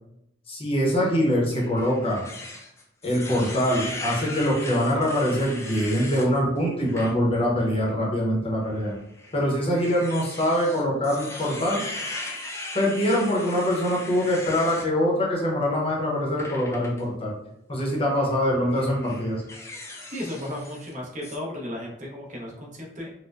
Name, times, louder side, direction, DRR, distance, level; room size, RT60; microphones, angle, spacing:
voice 1, 0.5-2.2 3.0-8.9 9.3-11.8 12.7-17.3 17.7-19.4, equal, 30° left, -3 dB, 0.8 m, -24 dB
sound 1, 1.5-6.3 6.8-7.1 7.6-7.7 8.7-14.9 16.4-17.0 18.0-18.2 18.7-20.9 21.2-21.4, left 2 dB, 15° left, 0.4 m, -38 dB
voice 2, 20.1-23.1, left 1 dB, 40° right, -2 dB, 0.8 m, -34 dB
4.2 x 2.1 x 2.4 m, 0.81 s
head